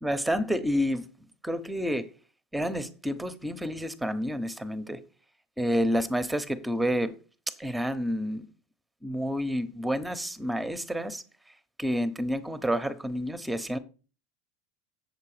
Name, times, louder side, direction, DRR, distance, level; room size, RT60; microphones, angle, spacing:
voice 1, 0.0-1.1 1.4-2.1 2.5-5.0 5.6-7.1 7.6-8.5 9.0-11.2 11.8-13.8, equal, 5° right, 1.0 m, -29 dB
8.1 x 6.8 x 5.0 m
hypercardioid pair, 100°, 0 cm